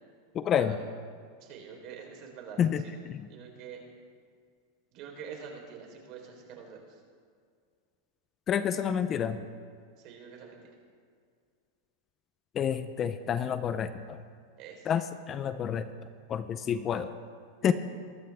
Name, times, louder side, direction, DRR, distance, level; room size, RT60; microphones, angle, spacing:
voice 1, 0.3-0.8 2.6-3.3 8.5-9.4 12.5-14.2 14.9-15.9 16.3-17.1 17.6-17.7, left 8 dB, 30° left, 11 dB, 0.7 m, -29 dB
voice 2, 1.4-2.6 3.3-3.8 4.9-7.0 10.0-10.7 14.6-14.9, right 6 dB, 50° right, 1 dB, 4.0 m, -46 dB
22.5 x 13.5 x 3.6 m, 2.1 s
supercardioid pair, 125°, 0 cm